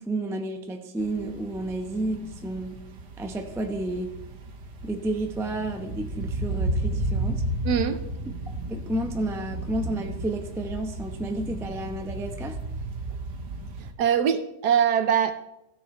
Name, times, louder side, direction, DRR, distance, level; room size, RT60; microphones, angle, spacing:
voice 1, 0.0-2.8 3.2-4.1 4.8-7.4 8.7-12.6, right 1 dB, 5° right, 0.4 m, -31 dB
sound 1, 1.0-13.9, right 1 dB, 90° right, 1.8 m, -33 dB
voice 2, 7.6-8.0 13.8-15.3, right 8 dB, 70° right, 1.3 m, -23 dB
15.5 x 6.4 x 4.3 m
omnidirectional pair, 1.8 m